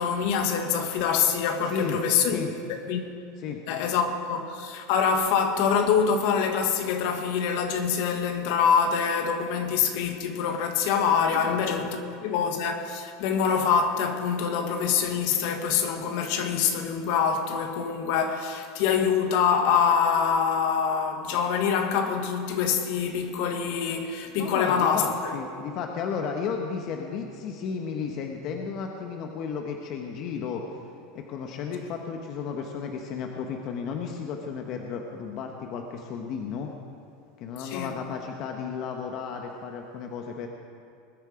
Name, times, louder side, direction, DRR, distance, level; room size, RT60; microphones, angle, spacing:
voice 1, 0.0-2.4 2.9-3.0 3.7-25.3 37.6-37.9, left 6 dB, 65° left, 1.4 m, -25 dB
voice 2, 11.3-11.9 24.4-30.6 31.1-36.7 37.4-40.5, left 6 dB, 50° left, 1.2 m, -33 dB
20.5 x 9.1 x 5.0 m
supercardioid pair, 135°, 0 cm